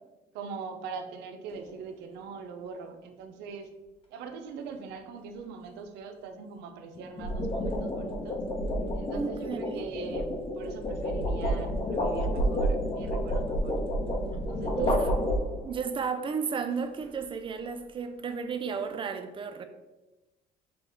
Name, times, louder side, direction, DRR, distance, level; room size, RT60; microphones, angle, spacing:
voice 1, 0.3-3.7 4.1-8.4 8.9-13.9 14.5-14.9, right 5 dB, 85° right, 6 dB, 0.6 m, -42 dB
sound 1, 1.5-1.8 6.9-15.8, equal, 35° left, 0.8 m, -30 dB
voice 2, 9.1-9.9 14.7-15.1 15.6-19.7, right 6 dB, 30° right, 8 dB, 0.4 m, -33 dB
6.0 x 2.3 x 3.5 m, 1.1 s
cardioid pair, 110°, 17 cm